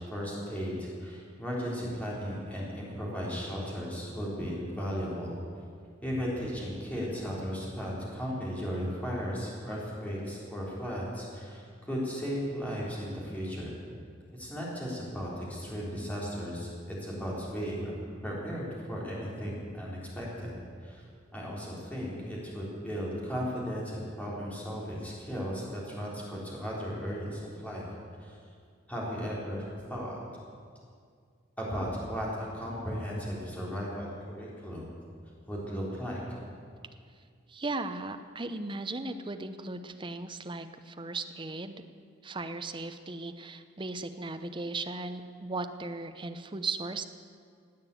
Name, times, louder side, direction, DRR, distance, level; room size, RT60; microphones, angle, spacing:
voice 1, 0.0-5.3 6.0-13.8 14.3-17.9 18.2-20.5 20.8-21.0 21.3-27.8 28.2-28.3 28.9-30.2 31.6-34.9 35.5-36.2, equal, 10° left, -5 dB, 3.6 m, -36 dB
voice 2, 37.5-41.8 42.2-47.0, right 3 dB, 25° right, 8 dB, 0.7 m, -37 dB
17.0 x 9.0 x 8.3 m, 2.2 s
head